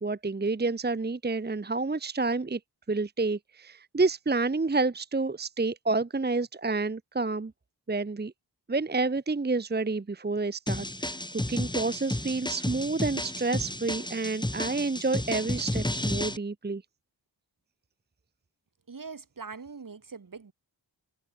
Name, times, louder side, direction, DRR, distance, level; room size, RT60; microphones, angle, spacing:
voice 1, 0.0-2.6 2.9-7.5 7.9-8.3 8.7-11.1 11.5-16.8, right 3 dB, 20° right, 0.9 m, -29 dB
sound 1, 10.7-16.4, left 1 dB, 10° left, 2.6 m, -32 dB
voice 2, 18.9-20.5, right 5 dB, 45° right, 2.0 m, -42 dB
cardioid pair, 50°, 44 cm